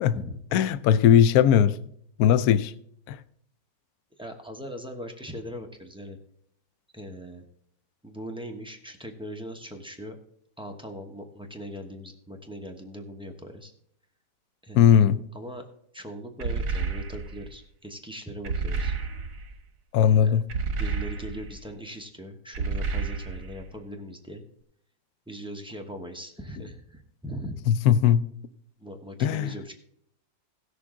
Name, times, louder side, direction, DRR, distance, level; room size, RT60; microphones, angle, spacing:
voice 1, 0.5-1.8 2.2-2.7 3.1-3.2 14.8-15.2 19.9-20.4 27.7-28.2 29.2-29.5, left 9 dB, 70° left, 0.9 m, -19 dB
voice 2, 4.2-6.2 6.9-7.4 8.0-10.2 10.6-13.7 14.6-15.0 15.3-15.6 15.9-18.9 20.2-20.4 20.7-24.4 25.3-27.6 28.8-29.7, equal, 5° right, 0.6 m, -40 dB
sound 1, 16.4-17.5 18.4-19.5 20.5-21.6 22.5-23.6, right 4 dB, 75° right, 1.9 m, -30 dB
16.0 x 6.9 x 3.7 m
omnidirectional pair, 2.0 m